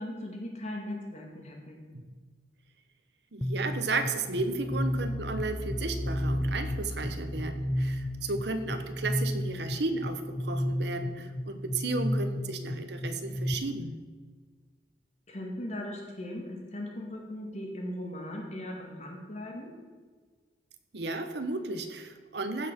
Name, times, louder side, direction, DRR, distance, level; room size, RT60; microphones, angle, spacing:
voice 1, 0.0-1.8 15.3-19.7, left 1 dB, 40° left, 0 dB, 2.3 m, -38 dB
voice 2, 3.3-14.0 20.9-22.7, right 3 dB, 70° right, 8 dB, 1.1 m, -34 dB
sound 1, 3.4-13.5, equal, 10° left, 0.6 m, -32 dB
15.0 x 5.9 x 6.1 m, 1.5 s
head